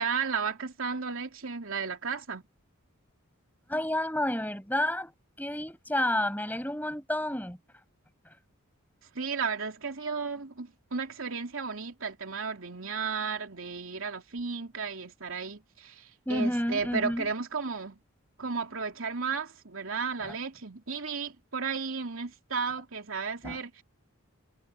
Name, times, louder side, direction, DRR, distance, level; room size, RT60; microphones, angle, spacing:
voice 1, 0.0-2.4 9.1-18.0 18.4-23.8, right 5 dB, 70° right, 2.9 m, -34 dB
voice 2, 3.7-5.1 5.4-7.6 8.2-8.3 16.2-17.3 20.2-20.3 23.4-23.6, left 1 dB, 10° left, 6.6 m, -30 dB
head